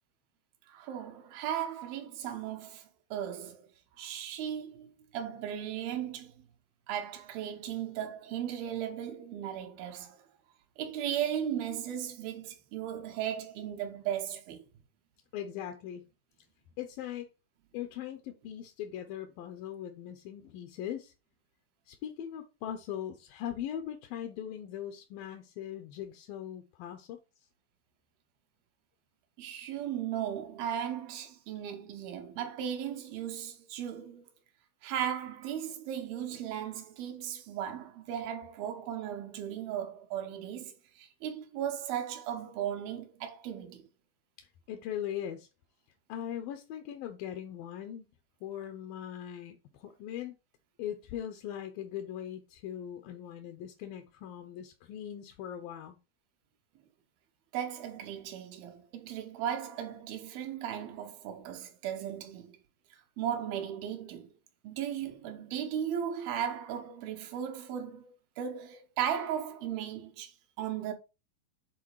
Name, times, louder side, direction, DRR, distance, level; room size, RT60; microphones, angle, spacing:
voice 1, 0.7-3.7 4.0-6.3 6.9-10.3 10.8-14.6 29.4-34.3 34.8-43.9 57.5-62.6 62.9-64.3 64.6-70.9, right 9 dB, 90° right, 3.0 m, -36 dB
voice 2, 15.3-16.0 16.8-17.3 17.7-21.1 21.9-27.2 44.4-45.5 46.1-48.1 48.4-50.3 50.8-56.0, left 10 dB, 80° left, 2.6 m, -40 dB
8.3 x 4.0 x 4.7 m
omnidirectional pair, 4.2 m